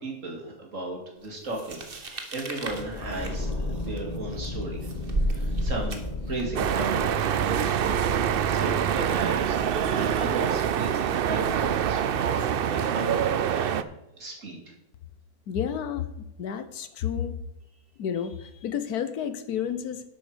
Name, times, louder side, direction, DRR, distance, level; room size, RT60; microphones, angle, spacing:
voice 1, 0.0-4.8 5.3-13.9 14.2-14.6, right 2 dB, 55° right, 0 dB, 2.8 m, -36 dB
sound 1, 1.5-6.6, right 2 dB, 40° right, 1.4 m, -34 dB
sound 2, 2.7-12.4, left 2 dB, 30° left, 1.0 m, -36 dB
sound 3, 6.6-13.8, right 9 dB, 75° right, 0.5 m, -25 dB
voice 2, 15.5-16.1 16.4-17.4 18.0-20.0, left 8 dB, 75° left, 11 dB, 1.4 m, -30 dB
11.5 x 8.3 x 5.0 m, 0.90 s
omnidirectional pair, 1.6 m